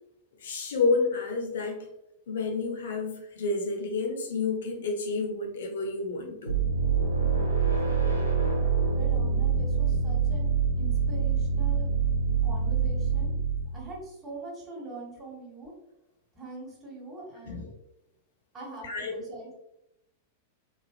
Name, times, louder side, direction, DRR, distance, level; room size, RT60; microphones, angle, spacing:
voice 1, 0.4-1.9 2.3-6.6 17.4-17.7 18.8-19.2, left 3 dB, 65° left, 2 dB, 0.6 m, -30 dB
sound 1, 6.5-13.9, right 5 dB, 90° right, 0.5 m, -25 dB
voice 2, 7.2-8.3 8.9-11.9 12.4-13.3 13.7-15.7 16.4-17.7 18.5-19.6, right 2 dB, 25° right, -2 dB, 1.3 m, -43 dB
3.3 x 2.4 x 2.5 m, 0.85 s
figure-of-eight pair, 95°, 0 cm